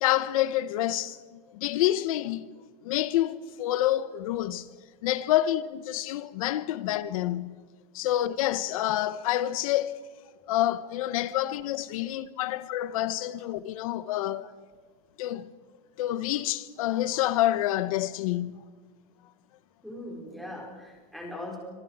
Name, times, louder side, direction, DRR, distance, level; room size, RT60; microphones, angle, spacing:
voice 1, 0.0-1.2 1.5-2.5 2.8-4.7 5.0-7.6 7.9-10.0 10.5-14.5 15.2-15.5 16.0-18.7, left 13 dB, 60° left, 1.0 m, -28 dB
voice 2, 19.8-21.6, left 1 dB, ahead, 4.7 m, -40 dB
27.0 x 26.5 x 4.8 m
supercardioid pair, 175°, 20 cm